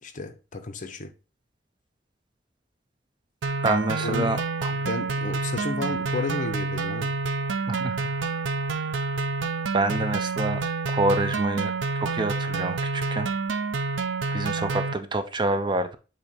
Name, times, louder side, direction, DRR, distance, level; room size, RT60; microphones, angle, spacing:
voice 1, 0.0-1.1 4.0-4.4 4.7-7.1, left 3 dB, 45° left, 0.8 m, -32 dB
sound 1, 3.4-14.9, right 4 dB, 80° right, 0.6 m, -28 dB
voice 2, 3.6-4.7 7.7-8.0 9.7-10.6 10.9-13.3 14.3-16.0, right 2 dB, 25° right, 0.5 m, -27 dB
7.8 x 2.8 x 4.3 m
head